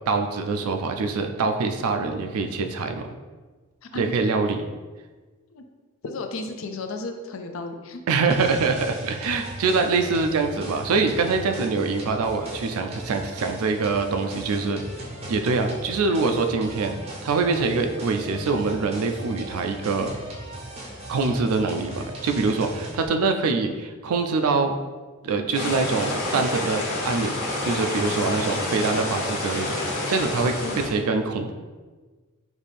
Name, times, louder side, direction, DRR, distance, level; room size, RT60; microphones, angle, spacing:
voice 1, 0.1-3.0 3.9-4.6 8.1-14.8 15.3-20.1 21.1-24.7 25.2-31.5, right 4 dB, 75° right, 6 dB, 0.4 m, -24 dB
voice 2, 6.0-8.0 30.6-30.8, left 3 dB, 60° left, 5 dB, 0.4 m, -33 dB
sound 1, 8.3-23.1, right 1 dB, 25° right, 0.6 m, -38 dB
sound 2, 25.5-30.9, left 2 dB, 85° left, 1.3 m, -28 dB
4.1 x 2.7 x 3.4 m, 1.4 s
head